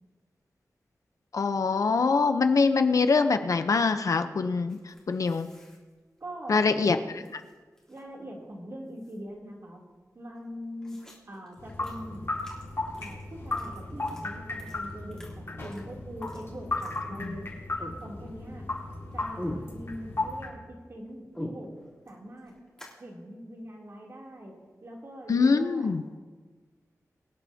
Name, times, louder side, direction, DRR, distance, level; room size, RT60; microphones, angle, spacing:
voice 1, 1.3-4.8 5.1-5.5 6.5-7.2 17.2-17.3 25.3-26.0, left 4 dB, 65° left, 8 dB, 0.7 m, -24 dB
sound 1, 4.7-6.9 7.2-8.2 8.5-8.6 8.9-9.5 9.9-10.0 10.3-17.5 17.8-18.5 18.8-20.3 20.6-23.0, left 1 dB, 10° left, 3.4 m, -45 dB
voice 2, 6.2-7.3 7.9-9.8 10.1-11.0 11.3-12.3 12.9-17.5 18.0-18.6 19.1-20.6 20.9-21.7 22.0-22.5 23.0-24.5 24.8-25.9, equal, 50° right, -2 dB, 3.0 m, -42 dB
sound 2, 11.6-20.5, left 2 dB, 50° left, 3.9 m, -35 dB
24.0 x 10.5 x 2.8 m, 1.3 s
wide cardioid pair, 125°, 6 cm